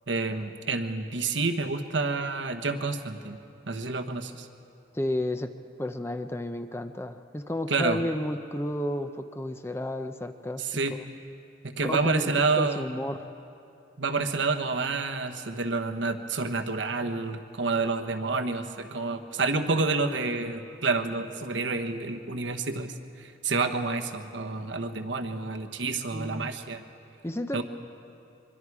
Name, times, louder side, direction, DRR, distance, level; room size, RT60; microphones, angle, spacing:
voice 1, 0.1-3.4 3.7-4.5 7.7-8.0 10.6-10.9 11.6-12.9 14.0-26.8 27.5-27.6, right 3 dB, 80° right, 6 dB, 1.2 m, -29 dB
voice 2, 4.9-5.5 5.8-10.6 10.9-11.0 11.8-13.2 26.1-26.5 27.2-27.6, left 1 dB, 15° left, 8 dB, 0.6 m, -32 dB
24.0 x 23.5 x 4.8 m, 2.6 s
head